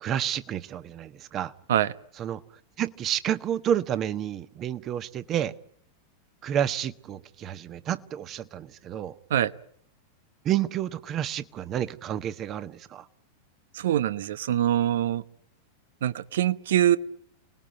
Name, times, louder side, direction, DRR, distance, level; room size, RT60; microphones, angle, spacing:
voice 1, 0.0-1.5 2.2-2.4 2.8-5.5 6.4-9.1 10.4-13.0, right 10 dB, 30° right, 12 dB, 1.4 m, -30 dB
voice 2, 13.7-15.2 16.0-17.0, right 11 dB, 60° right, 15 dB, 1.1 m, -24 dB
30.0 x 20.0 x 9.3 m, 0.71 s
figure-of-eight pair, 90°, 0 cm